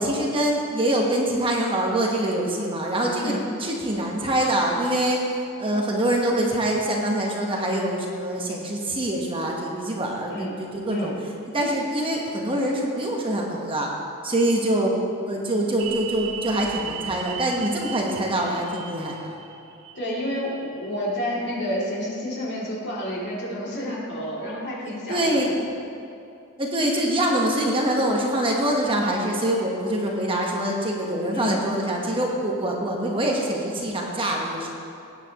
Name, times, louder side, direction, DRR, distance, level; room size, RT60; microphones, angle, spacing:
voice 1, 0.0-5.2 5.6-11.1 11.5-13.9 14.2-14.9 15.3-19.4 25.1-25.7 26.6-34.7, right 1 dB, 25° right, -1 dB, 1.2 m, -24 dB
voice 2, 10.3-10.6 10.9-11.2 19.9-25.5 31.3-31.6, equal, 50° left, -5 dB, 2.7 m, -30 dB
sound 1, 15.8-21.1 21.4-21.5, right 9 dB, 60° right, 0.7 m, -37 dB
18.0 x 9.0 x 3.0 m, 2.6 s
head